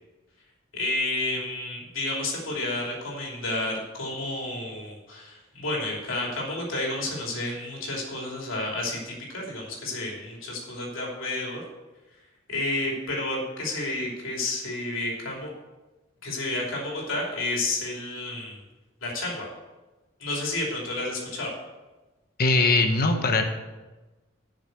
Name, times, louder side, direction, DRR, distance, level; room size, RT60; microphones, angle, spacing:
voice 1, 0.7-11.6 12.5-15.5 16.2-18.6 19.0-19.5 20.2-21.5, left 2 dB, 85° left, -2 dB, 3.0 m, -31 dB
voice 2, 22.4-23.4, left 3 dB, 50° left, 6 dB, 0.9 m, -21 dB
8.0 x 6.4 x 7.9 m, 1.1 s
head